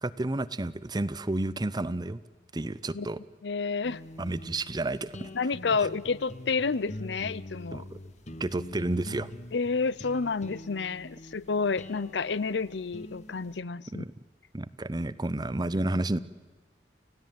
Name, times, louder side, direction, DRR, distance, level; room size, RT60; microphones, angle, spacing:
voice 1, 0.0-2.2 2.5-3.2 4.2-5.3 7.7-8.0 8.4-9.3 13.9-14.1 14.5-16.2, right 2 dB, 25° right, 17 dB, 0.7 m, -31 dB
voice 2, 3.4-4.0 5.3-7.8 9.5-14.0, left 4 dB, 80° left, 20 dB, 0.7 m, -30 dB
sound 1, 3.8-13.6, left 1 dB, 40° left, 1.3 m, -44 dB
29.5 x 15.5 x 9.3 m, 1.4 s
head